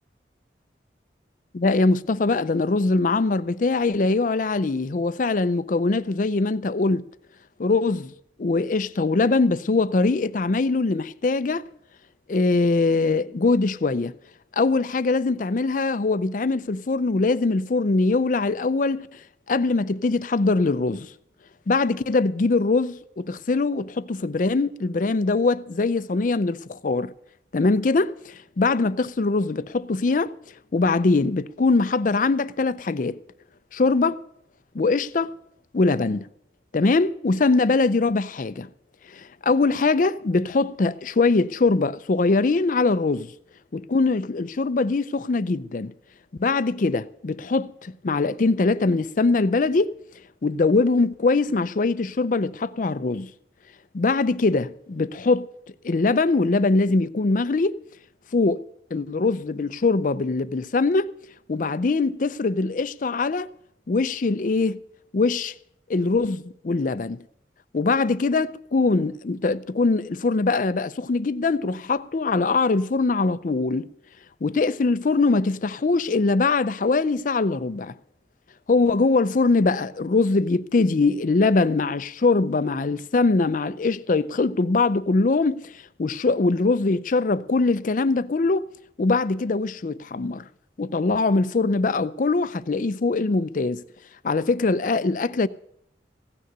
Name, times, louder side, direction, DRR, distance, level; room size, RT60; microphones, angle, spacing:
voice 1, 1.5-7.0 7.6-8.1 8.4-11.6 12.3-14.1 14.5-19.2 19.5-21.1 21.7-27.1 27.5-30.3 30.7-33.2 33.7-34.2 34.7-35.3 35.7-36.3 36.7-38.7 39.1-43.3 43.7-45.9 46.4-49.9 50.4-53.3 53.9-55.5 55.8-57.8 58.3-58.6 58.9-61.1 61.5-63.5 63.9-64.8 65.1-65.5 65.9-67.2 67.7-73.9 74.4-77.9 78.7-85.7 86.0-88.7 89.0-90.4 90.8-93.8 94.2-95.5, left 3 dB, 45° left, 0.5 m, -22 dB
16.0 x 6.6 x 9.2 m
head